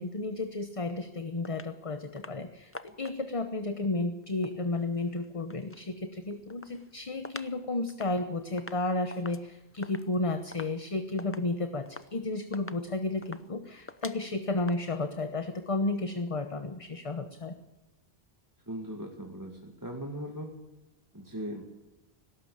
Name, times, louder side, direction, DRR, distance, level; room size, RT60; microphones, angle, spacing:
voice 1, 0.0-17.6, left 2 dB, 35° left, 9 dB, 1.0 m, -32 dB
sound 1, 1.4-1.7 2.2-2.4 2.7-3.4 4.2-5.9 6.3-7.6 7.9-14.8, left 2 dB, 15° left, 0.6 m, -47 dB
voice 2, 18.7-20.5 21.1-21.7, equal, 20° right, 1 dB, 2.0 m, -39 dB
19.0 x 17.5 x 8.7 m, 0.97 s
omnidirectional pair, 1.0 m